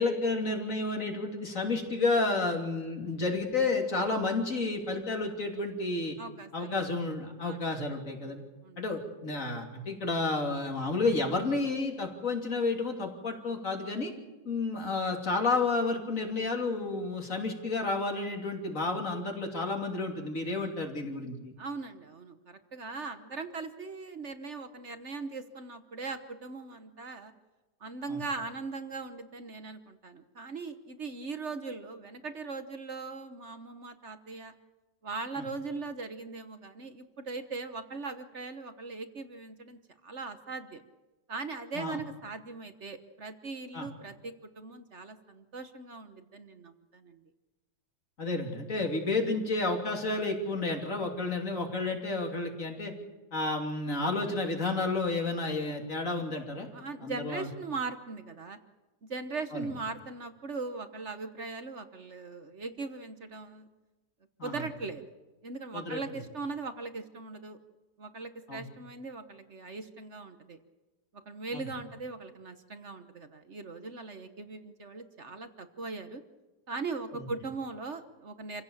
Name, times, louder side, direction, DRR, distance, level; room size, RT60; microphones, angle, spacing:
voice 1, 0.0-6.2 6.5-8.4 8.8-14.1 14.5-21.5 28.1-28.2 35.4-35.5 41.8-42.0 43.7-43.9 48.2-52.9 53.3-56.7 57.0-57.5 59.5-59.7 64.4-64.6 65.7-66.0 68.5-68.6 71.5-71.7 77.1-77.3, left 3 dB, 40° left, 3 dB, 3.4 m, -31 dB
voice 2, 6.2-6.9 7.4-7.7 8.2-8.3 8.6-8.8 21.6-27.3 27.8-34.5 35.0-40.8 41.3-47.2 56.7-58.6 59.0-63.7 64.4-65.1 65.4-67.6 68.0-70.6 71.3-76.2 76.7-78.6, right 4 dB, 40° right, 9 dB, 1.3 m, -40 dB
28.0 x 16.5 x 7.3 m, 1.1 s
omnidirectional pair, 2.1 m